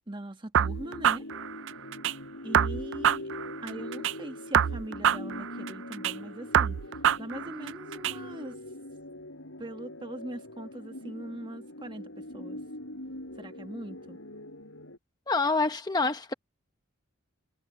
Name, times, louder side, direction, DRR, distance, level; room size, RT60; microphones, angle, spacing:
voice 1, 0.1-1.2 2.4-3.3 3.6-8.6 9.6-12.6 13.4-14.2, right 1 dB, 25° right, 1.5 m, -41 dB
sound 1, 0.5-2.1 2.5-4.1 4.5-6.1 6.5-8.1, right 9 dB, 65° right, 0.3 m, -26 dB
sound 2, 0.6-15.0, left 1 dB, 80° left, 6.8 m, -42 dB
voice 2, 15.3-16.3, left 3 dB, 20° left, 0.9 m, -26 dB
head